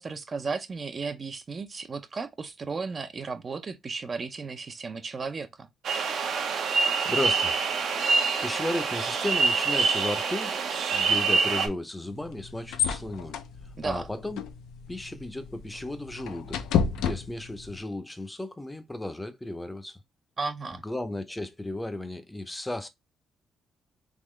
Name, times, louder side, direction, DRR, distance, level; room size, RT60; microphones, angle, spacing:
voice 1, 0.0-5.7 13.8-14.1 20.4-20.8, right 4 dB, 40° right, 0.5 m, -34 dB
sound 1, 5.8-11.7, right 4 dB, 70° right, 0.8 m, -26 dB
voice 2, 7.0-7.6 8.0-10.5 10.9-13.4 13.8-14.4 14.9-16.7 17.0-20.0 20.7-22.9, left 1 dB, 10° left, 0.6 m, -34 dB
sound 2, 12.1-17.8, left 7 dB, 90° left, 0.5 m, -32 dB
3.6 x 2.9 x 3.1 m
cardioid pair, 90°, 0 cm